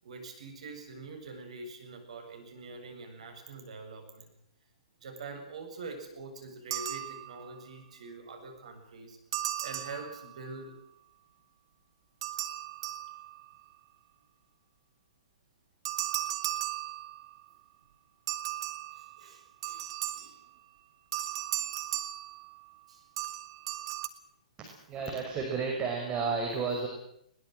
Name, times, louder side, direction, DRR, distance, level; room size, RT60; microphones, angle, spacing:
voice 1, 0.0-4.3 5.0-9.2 9.6-10.7 18.9-19.9 20.1-20.4 22.9-23.1, right 3 dB, 65° right, 5 dB, 7.6 m, -45 dB
sound 1, 6.7-7.6 9.3-10.6 12.2-13.6 15.8-17.5 18.3-20.5 21.1-22.8 23.2-24.1, right 14 dB, 45° right, 2.1 m, -36 dB
voice 2, 24.6-26.9, right 5 dB, 25° right, 1 dB, 5.8 m, -32 dB
21.5 x 20.5 x 7.9 m, 0.76 s
figure-of-eight pair, 115°, 4 cm